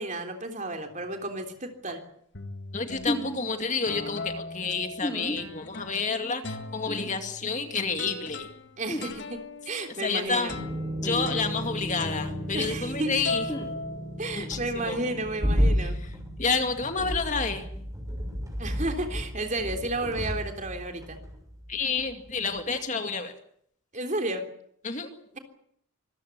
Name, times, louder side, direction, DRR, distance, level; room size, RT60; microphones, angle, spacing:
voice 1, 0.0-2.0 8.8-9.4 9.7-10.5 12.5-13.1 14.2-16.0 18.6-21.2 23.9-24.5, right 2 dB, 35° right, 5 dB, 3.6 m, -32 dB
sound 1, 0.9-1.3 1.9-2.0 2.3-3.4 3.9-6.1 6.4-13.0 13.2-14.6, left 2 dB, 55° left, 1.9 m, -39 dB
voice 2, 2.7-8.5 10.0-10.6 11.0-13.4 14.4-15.0 15.8-16.1 16.4-17.7 21.7-23.3 24.8-25.1, left 4 dB, 35° left, 6 dB, 2.2 m, -29 dB
sound 2, 3.1-3.4 5.0-5.4 6.8-7.1 8.9-9.1 11.0-11.4 13.5-13.7, equal, 20° left, 3.4 m, -32 dB
sound 3, 10.5-22.0 22.3-22.5, equal, 15° right, 6.3 m, -32 dB
25.5 x 15.0 x 9.4 m, 0.68 s
head